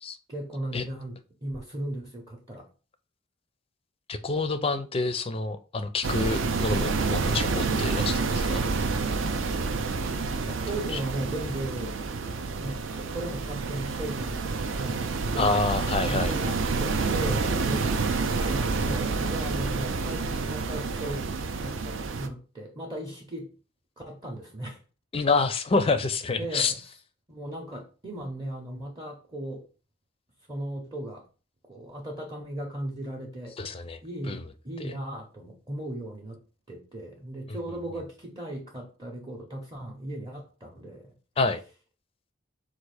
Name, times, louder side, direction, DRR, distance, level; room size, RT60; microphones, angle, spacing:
voice 1, 0.3-2.7 10.6-12.0 12.6-15.0 15.3-15.6 16.0-23.5 24.0-24.8 26.4-26.8 27.3-29.6 30.5-31.3 31.7-33.6 34.0-36.4 36.7-41.1, right 1 dB, 20° right, 0.7 m, -37 dB
voice 2, 4.1-8.6 10.5-10.6 15.4-16.4 25.1-26.7 33.6-34.0 34.3-34.4 34.8-34.9 37.5-37.6 41.4-41.6, left 3 dB, 25° left, 0.4 m, -27 dB
sound 1, 6.0-22.3, right 4 dB, 65° right, 0.5 m, -28 dB
4.5 x 2.4 x 4.7 m
head